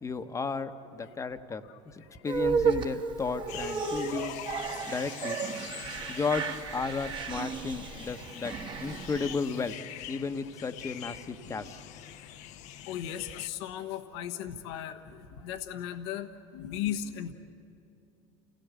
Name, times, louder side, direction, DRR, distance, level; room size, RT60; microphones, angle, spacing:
voice 1, 0.0-4.3 4.9-5.4 6.1-8.5 8.8-9.8 10.1-11.8, left 4 dB, 20° left, 9 dB, 1.1 m, -34 dB
sound 1, 2.3-9.7, right 5 dB, 35° right, 1.5 m, -33 dB
sound 2, 3.5-13.5, left 11 dB, 55° left, 0.9 m, -45 dB
voice 2, 12.9-17.3, left 10 dB, 75° left, 7 dB, 1.3 m, -37 dB
28.5 x 17.0 x 8.3 m, 3.0 s
supercardioid pair, 100°, 14 cm